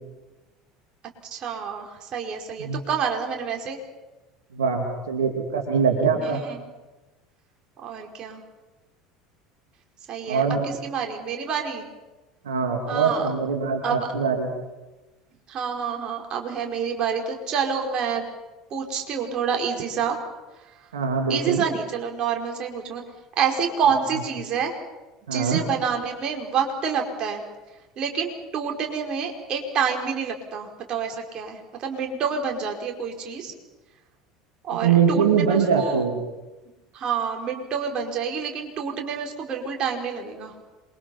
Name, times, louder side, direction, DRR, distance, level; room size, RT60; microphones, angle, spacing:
voice 1, 1.3-3.8 6.0-6.6 7.8-8.4 10.1-11.9 12.9-13.3 13.8-14.1 15.5-18.2 18.7-20.2 20.5-20.9 21.3-23.0 23.4-24.8 25.2-27.4 28.0-33.5 34.6-36.0 36.9-40.5, right 6 dB, 40° right, 2 dB, 4.8 m, -28 dB
voice 2, 4.5-6.4 10.3-10.7 12.4-14.5 20.9-21.6 25.3-25.6 34.7-36.2, right 6 dB, 75° right, 2 dB, 2.7 m, -23 dB
27.5 x 23.0 x 5.7 m, 1.1 s
figure-of-eight pair, 70°, 2 cm